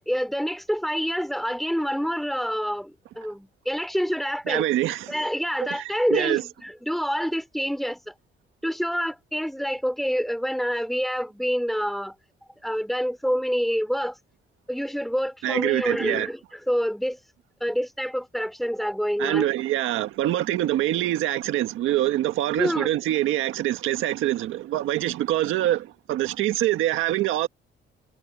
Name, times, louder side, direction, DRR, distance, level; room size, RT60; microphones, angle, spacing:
voice 1, 0.0-4.6 5.1-8.1 8.6-12.2 12.6-14.2 14.7-17.2 17.6-19.5 22.6-22.9, equal, ahead, 2.9 m, -27 dB
voice 2, 4.5-5.1 5.7-6.4 15.4-16.3 19.2-27.5, right 14 dB, 90° right, 1.6 m, -25 dB
cardioid pair, 90°, 20 cm